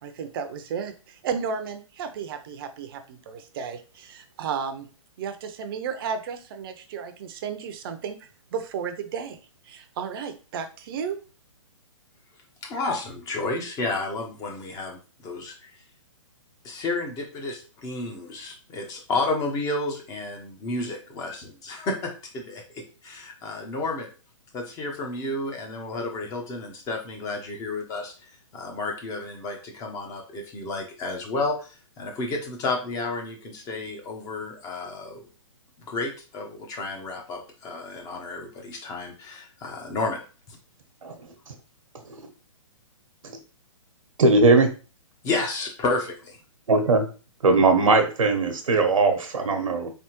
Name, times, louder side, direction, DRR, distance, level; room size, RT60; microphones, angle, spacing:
voice 1, 0.0-4.9 5.2-8.2 8.5-9.4 9.6-11.2, right 6 dB, 45° right, 8 dB, 0.6 m, -33 dB
voice 2, 12.6-15.5 16.6-24.1 24.5-35.3 35.9-40.2 40.5-40.6 45.2-46.4, left 3 dB, 20° left, 2 dB, 0.8 m, -31 dB
voice 3, 44.2-44.7 46.7-47.0 47.4-49.9, right 3 dB, 85° right, 6 dB, 1.0 m, -19 dB
4.1 x 3.4 x 3.0 m, 0.35 s
hypercardioid pair, 140°, 17 cm